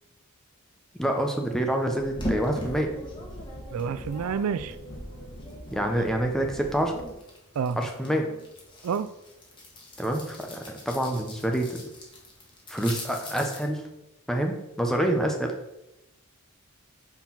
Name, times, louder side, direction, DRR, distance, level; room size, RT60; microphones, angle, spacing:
voice 1, 1.0-2.9 5.7-6.9 7.8-8.3 10.0-11.8 12.7-13.8 14.3-15.5, right 1 dB, ahead, 3 dB, 0.8 m, -27 dB
sound 1, 1.9-7.0, left 1 dB, 50° left, 1.6 m, -43 dB
sound 2, 2.2-6.1 6.4-13.7, left 1 dB, 20° left, 1.5 m, -40 dB
voice 2, 3.7-4.8 7.6-7.8 8.8-9.1, right 6 dB, 85° right, 13 dB, 0.4 m, -28 dB
5.7 x 4.5 x 5.8 m, 0.91 s
head